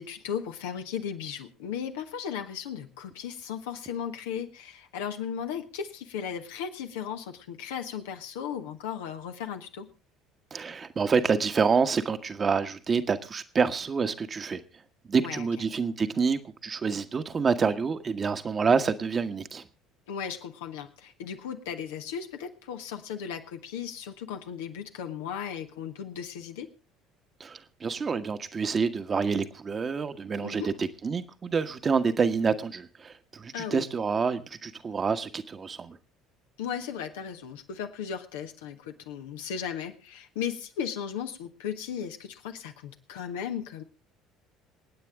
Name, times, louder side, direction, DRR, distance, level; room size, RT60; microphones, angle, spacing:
voice 1, 0.0-9.9 15.1-15.5 20.1-26.7 30.4-30.7 33.5-33.8 36.6-43.8, left 8 dB, 75° left, 5 dB, 1.4 m, -36 dB
voice 2, 10.5-14.6 15.1-19.6 27.4-36.0, right 5 dB, 35° right, 8 dB, 1.3 m, -27 dB
27.5 x 9.1 x 3.6 m, 0.31 s
hypercardioid pair, 60°, 0 cm